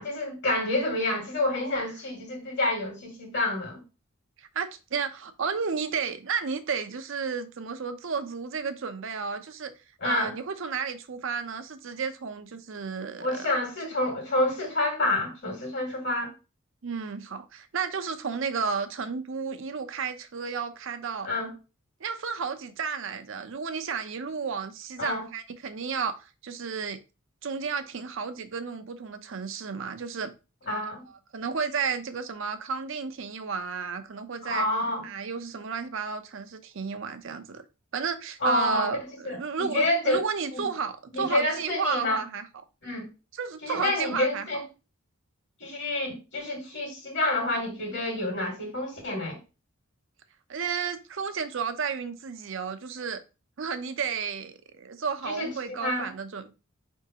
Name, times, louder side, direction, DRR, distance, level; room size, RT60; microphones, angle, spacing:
voice 1, 0.0-3.8 10.0-10.3 13.2-16.3 21.2-21.5 25.0-25.3 30.7-31.0 34.4-35.0 38.4-38.9 39.2-40.2 40.5-40.6 41.1-42.2 42.8-43.1 43.6-44.6 45.6-49.4 55.2-56.1, left 1 dB, 55° left, 1.9 m, -28 dB
voice 2, 4.4-9.7 10.0-13.3 16.8-21.3 22.0-27.0 27.4-30.3 31.3-34.7 35.0-37.6 37.9-42.5 43.4-44.5 50.5-53.2 53.6-56.5, right 5 dB, 65° right, 0.6 m, -32 dB
4.9 x 3.5 x 2.8 m
head